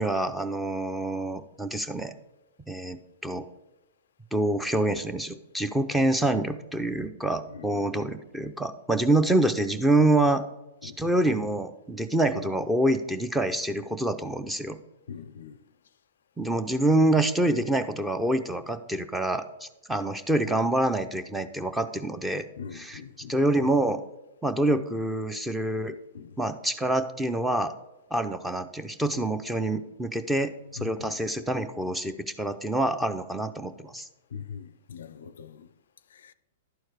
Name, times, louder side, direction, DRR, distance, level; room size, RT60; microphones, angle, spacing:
voice 1, 0.0-2.1 2.7-3.4 4.3-10.4 10.8-14.8 16.4-22.4 22.7-23.0 23.3-24.0 24.4-25.9 26.4-27.7 28.1-34.1, right 1 dB, 5° right, 0.7 m, -26 dB
voice 2, 15.1-15.5 22.6-23.3 26.1-26.3 30.8-31.1 34.3-35.7, left 7 dB, 75° left, 0.5 m, -41 dB
11.5 x 4.5 x 4.8 m
hypercardioid pair, 120°, 0 cm